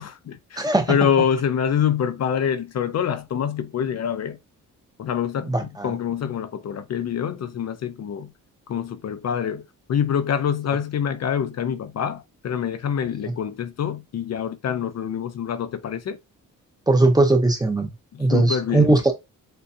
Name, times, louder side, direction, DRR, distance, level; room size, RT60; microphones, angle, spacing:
voice 1, 0.0-4.4 5.0-8.3 8.7-9.6 9.9-16.2 18.1-19.0, left 8 dB, 50° left, 0.5 m, -26 dB
voice 2, 0.6-1.0 5.4-5.9 16.9-17.9 18.2-19.1, right 2 dB, 10° right, 0.6 m, -19 dB
6.6 x 2.3 x 2.7 m
wide cardioid pair, 175°, 33 cm